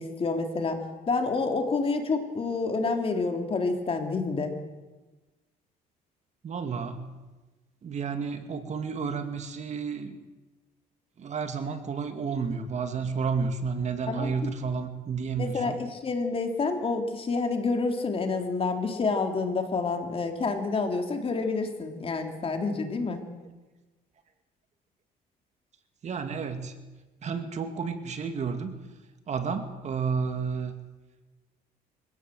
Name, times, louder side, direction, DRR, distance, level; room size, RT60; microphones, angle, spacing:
voice 1, 0.0-4.5 14.1-14.5 15.4-23.2, left 4 dB, 35° left, 5 dB, 3.5 m, -28 dB
voice 2, 6.4-7.2 7.8-10.2 11.2-15.8 26.0-26.8 27.2-28.8 29.3-30.7, right 5 dB, 45° right, 7 dB, 2.3 m, -31 dB
24.5 x 17.0 x 7.8 m, 1.2 s
cardioid pair, 110°, 17 cm